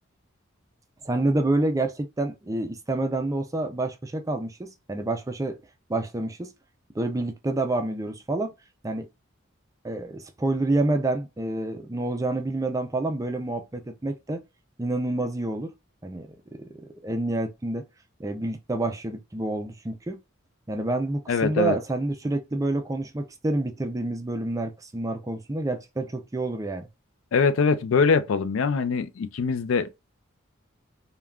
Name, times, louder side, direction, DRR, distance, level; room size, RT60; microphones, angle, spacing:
voice 1, 1.0-5.6 5.9-6.5 6.9-8.5 8.8-9.1 9.8-14.4 14.8-15.7 16.0-16.3 16.6-17.8 18.2-20.2 20.7-26.9, right 2 dB, 15° right, 0.4 m, -28 dB
voice 2, 21.3-21.8 27.3-30.0, left 5 dB, 75° left, 0.4 m, -23 dB
3.4 x 2.2 x 2.3 m
head